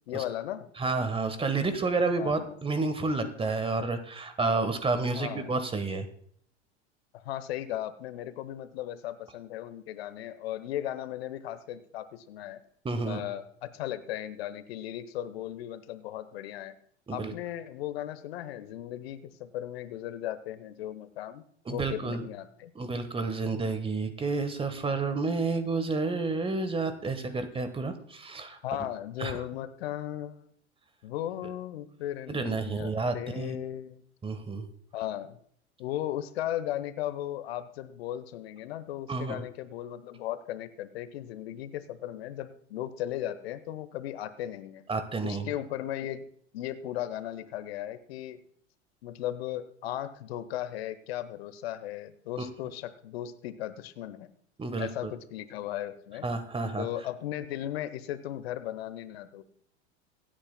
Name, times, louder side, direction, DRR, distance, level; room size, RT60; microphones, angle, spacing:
voice 1, 0.1-0.7 2.2-2.5 5.1-5.5 7.1-12.6 13.1-16.7 17.1-21.4 21.7-22.7 28.6-30.5 31.0-34.0 34.9-35.4 35.8-44.8 45.2-46.3 46.5-48.4 49.0-54.3 54.8-56.3 56.8-59.5, left 12 dB, 60° left, 13 dB, 1.0 m, -36 dB
voice 2, 0.8-6.1 12.8-13.2 17.1-17.3 21.7-22.3 22.7-28.6 29.2-29.3 32.3-33.6 34.2-34.7 39.1-39.4 44.9-45.5 52.4-52.5 54.6-55.1 56.2-56.9, right 3 dB, 15° right, 10 dB, 1.3 m, -30 dB
25.5 x 8.9 x 2.2 m, 0.63 s
figure-of-eight pair, 80°, 34 cm